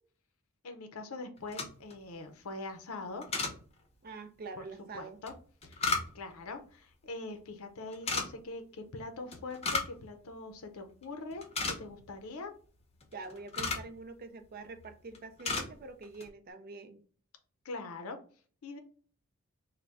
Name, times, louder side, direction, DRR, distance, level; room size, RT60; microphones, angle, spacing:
voice 1, 0.6-3.2 4.6-4.7 4.9-5.3 5.6-11.5 11.8-12.5 17.6-18.2 18.6-18.8, left 3 dB, 80° left, 7 dB, 0.6 m, -43 dB
sound 1, 1.4-2.0 3.2-3.6 5.3-6.4 7.9-8.3 9.3-10.0 10.3-10.4 10.9-11.0 11.3-12.1 13.0-13.9 14.6-14.9 15.1-15.7 16.0-16.3, left 4 dB, 30° left, 0.7 m, -34 dB
voice 2, 4.0-5.2 13.1-17.0, right 3 dB, 45° right, 10 dB, 0.5 m, -45 dB
3.4 x 2.1 x 4.0 m, 0.42 s
head